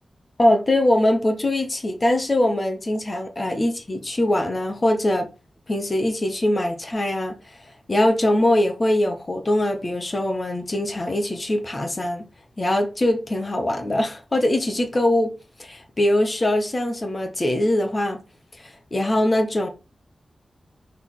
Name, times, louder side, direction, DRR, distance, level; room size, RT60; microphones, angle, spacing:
voice 1, 0.4-5.3 5.7-7.3 7.9-12.2 12.6-15.3 15.6-18.2 18.6-19.7, left 1 dB, 25° left, 1.3 m, -22 dB
6.5 x 4.1 x 3.8 m
wide cardioid pair, 150°, 0 cm